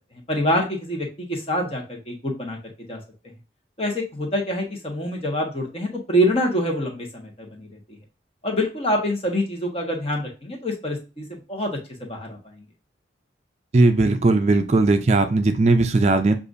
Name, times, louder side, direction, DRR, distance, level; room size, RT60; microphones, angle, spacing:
voice 1, 0.3-2.6 2.9-3.0 3.8-7.8 8.4-12.7, equal, 35° left, 1 dB, 1.1 m, -26 dB
voice 2, 13.7-16.4, right 2 dB, 35° right, 7 dB, 0.4 m, -18 dB
6.7 x 2.5 x 2.5 m, 0.32 s
head